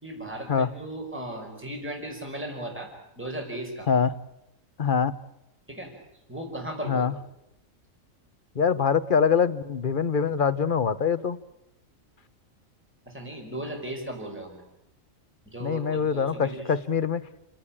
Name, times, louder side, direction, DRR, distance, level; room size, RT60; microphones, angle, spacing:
voice 1, 0.0-2.9 3.2-3.9 5.7-5.9 6.3-7.0 13.1-14.6 15.5-16.6, right 1 dB, 10° right, 1 dB, 5.3 m, -36 dB
voice 2, 4.8-5.1 6.8-7.1 8.5-11.4 15.6-17.2, left 6 dB, 40° left, 13 dB, 1.2 m, -24 dB
29.0 x 18.5 x 8.7 m, 0.87 s
omnidirectional pair, 1.4 m